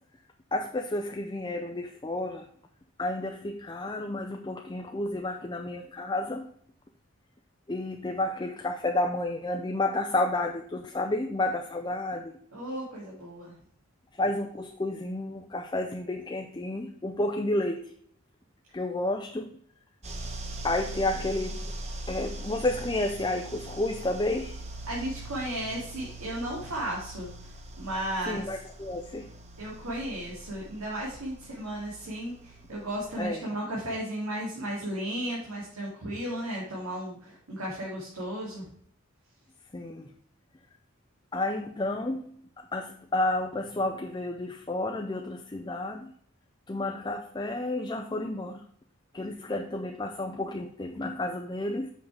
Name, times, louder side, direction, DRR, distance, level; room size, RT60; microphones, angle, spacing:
voice 1, 0.5-2.5 3.0-6.4 7.7-12.4 14.1-17.9 18.7-19.5 20.6-21.6 22.1-24.6 28.2-29.3 33.2-33.5 39.7-40.1 41.3-42.4 42.7-46.1 46.7-48.7 49.1-51.9, left 2 dB, 20° left, 4 dB, 0.4 m, -31 dB
voice 2, 12.5-13.5 24.9-27.5 27.8-28.5 29.6-38.7, right 1 dB, 90° right, -5 dB, 2.6 m, -34 dB
sound 1, 20.0-33.3, right 2 dB, 30° right, 1.0 m, -41 dB
7.2 x 5.5 x 4.8 m, 0.64 s
head